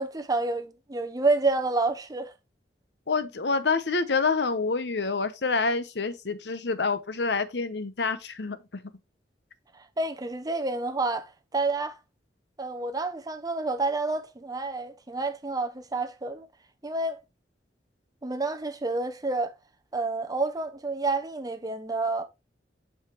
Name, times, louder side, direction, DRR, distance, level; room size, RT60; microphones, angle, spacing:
voice 1, 0.0-2.3 9.7-11.9 12.6-16.5 16.8-17.2 18.2-19.5 19.9-22.2, right 3 dB, 20° right, 0.8 m, -29 dB
voice 2, 3.1-8.8, left 4 dB, 70° left, 0.8 m, -27 dB
7.5 x 5.7 x 3.1 m
head